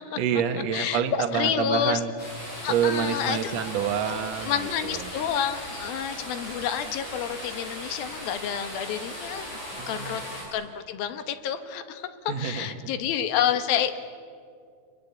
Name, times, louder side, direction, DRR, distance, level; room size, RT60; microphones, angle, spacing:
voice 1, 0.2-2.1 2.7-5.1 9.8-10.2 12.3-12.7, right 8 dB, 55° right, 5 dB, 2.1 m, -27 dB
voice 2, 0.7-2.0 2.6-3.6 4.5-14.0, left 9 dB, 75° left, 10 dB, 2.8 m, -29 dB
sound 1, 2.2-10.4, equal, 40° left, 8.3 m, -38 dB
27.0 x 22.5 x 8.3 m, 2.3 s
omnidirectional pair, 4.5 m